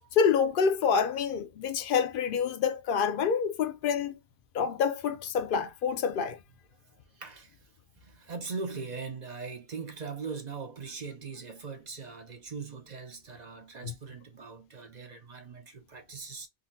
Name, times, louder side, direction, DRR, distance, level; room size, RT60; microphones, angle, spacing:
voice 1, 0.2-4.1 4.5-6.4 13.8-13.9, left 6 dB, 60° left, 0.7 m, -27 dB
voice 2, 7.1-7.6 8.0-16.5, right 4 dB, 45° right, 0.9 m, -40 dB
3.7 x 2.5 x 2.6 m
omnidirectional pair, 1.0 m